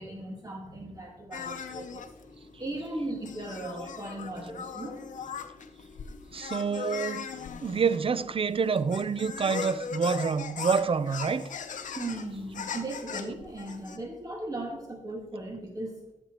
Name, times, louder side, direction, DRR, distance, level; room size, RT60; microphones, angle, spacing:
voice 1, 0.0-2.0 2.6-5.0 12.0-15.9, right 2 dB, 30° right, 1.7 m, -37 dB
sound 1, 1.3-14.0, left 6 dB, 80° left, 0.7 m, -40 dB
voice 2, 6.3-7.3 7.6-11.5, right 5 dB, 45° right, 0.5 m, -27 dB
13.0 x 7.0 x 3.0 m
cardioid pair, 75°, 13 cm